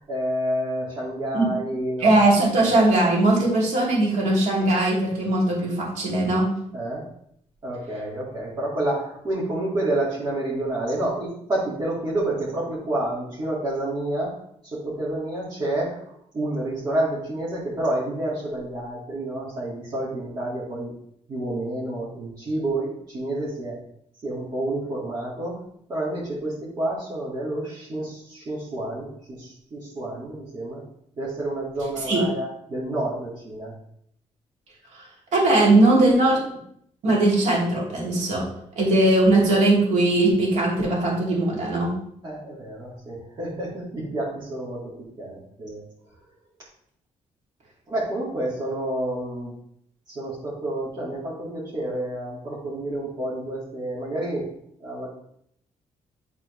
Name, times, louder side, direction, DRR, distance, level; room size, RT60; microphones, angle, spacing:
voice 1, 0.0-2.2 6.7-7.0 7.6-14.3 14.6-20.9 21.3-23.8 24.2-25.6 25.9-30.8 31.2-33.7 42.2-45.8 47.9-49.5 50.1-54.5 54.8-55.1, right 1 dB, 30° right, -9 dB, 2.0 m, -29 dB
voice 2, 2.0-6.5 32.1-32.2 34.9-35.1 35.3-36.4 37.0-38.4 38.8-41.9, right 2 dB, 70° right, -4 dB, 2.6 m, -19 dB
10.5 x 4.1 x 3.2 m, 0.71 s
cardioid pair, 175°, 13 cm